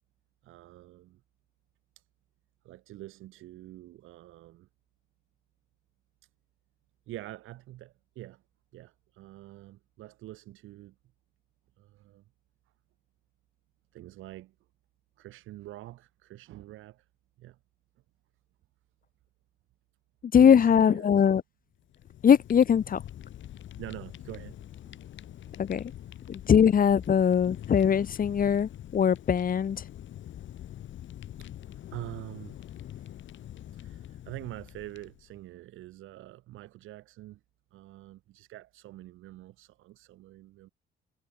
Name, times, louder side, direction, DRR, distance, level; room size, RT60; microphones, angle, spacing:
voice 1, 0.4-1.2 2.0-2.1 2.6-4.7 7.1-8.4 8.7-10.9 11.8-12.2 13.9-14.5 15.2-17.1 17.4-17.6 20.4-21.1 23.8-24.6 24.8-25.0 25.9-26.2 31.4-33.2 33.7-37.4 37.7-40.7, right 16 dB, 90° right, 4.2 m, -45 dB
voice 2, 20.3-21.4 22.2-23.0 25.6-25.9 26.3-29.8, left 8 dB, 45° left, 1.1 m, -21 dB
Fire, 21.8-35.4, left 11 dB, 70° left, 3.0 m, -44 dB
cardioid pair, 90°, 20 cm